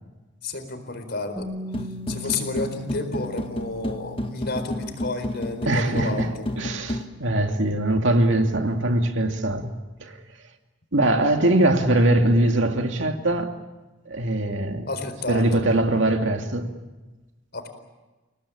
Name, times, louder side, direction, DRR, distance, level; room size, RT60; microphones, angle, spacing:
voice 1, 0.4-1.5 2.1-6.5 14.9-15.6 17.5-17.7, left 3 dB, 55° left, 4.3 m, -31 dB
Bass guitar, 1.4-7.6, left 3 dB, 5° left, 3.3 m, -41 dB
sound 1, 1.7-7.0, left 1 dB, 30° left, 1.5 m, -31 dB
voice 2, 5.7-9.7 10.0-10.2 10.9-13.5 14.1-14.9 15.3-16.7, right 1 dB, 70° right, 2.5 m, -22 dB
29.5 x 18.5 x 8.8 m
head